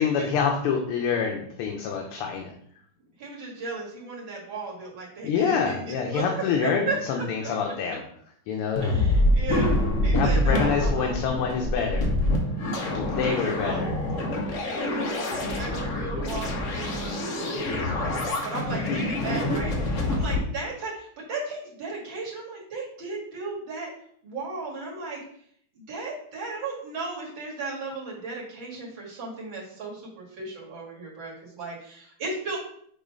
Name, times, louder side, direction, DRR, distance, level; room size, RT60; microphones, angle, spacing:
voice 1, 0.0-2.5 5.2-8.0 8.5-8.9 10.1-12.1 12.8-13.9 18.9-19.0, left 6 dB, 85° left, 1 dB, 1.7 m, -27 dB
voice 2, 3.2-7.5 8.8-11.2 13.3-13.8 14.6-18.1 18.4-23.9 24.2-25.2 25.7-32.6, right 3 dB, 60° right, -3 dB, 2.6 m, -35 dB
sound 1, 8.8-20.4, left 1 dB, 50° left, 1.0 m, -26 dB
6.4 x 3.1 x 5.1 m, 0.65 s
omnidirectional pair, 2.4 m